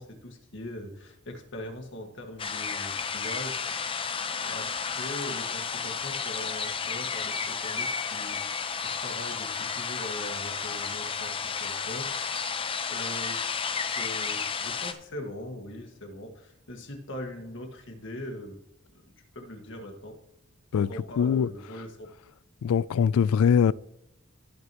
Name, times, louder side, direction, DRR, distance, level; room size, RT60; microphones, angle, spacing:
voice 1, 0.0-3.6 4.3-18.6 18.9-19.0 19.3-20.2 20.7-22.2, left 1 dB, 60° left, 1.8 m, -41 dB
sound 1, 2.4-14.9, left 6 dB, 25° left, 0.6 m, -32 dB
voice 2, 20.7-21.5 22.6-23.7, left 7 dB, 90° left, 0.3 m, -22 dB
18.0 x 6.4 x 3.0 m
head